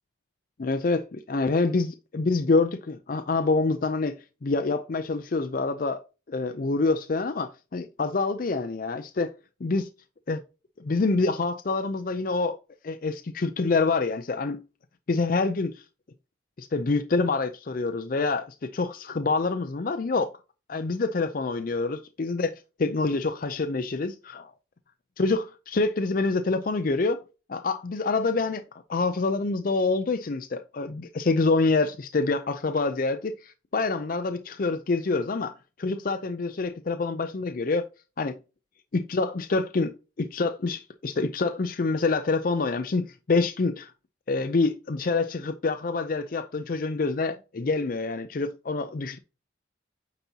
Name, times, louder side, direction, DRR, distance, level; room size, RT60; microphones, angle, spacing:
voice 1, 0.6-6.0 6.3-9.3 9.6-9.9 10.3-10.4 10.8-12.6 12.8-14.6 15.1-15.8 16.6-20.3 20.7-22.5 22.8-24.5 25.2-27.2 27.5-37.8 38.2-38.3 38.9-43.9 44.3-49.2, left 3 dB, 45° left, 0.4 m, -26 dB
9.1 x 4.2 x 2.7 m
head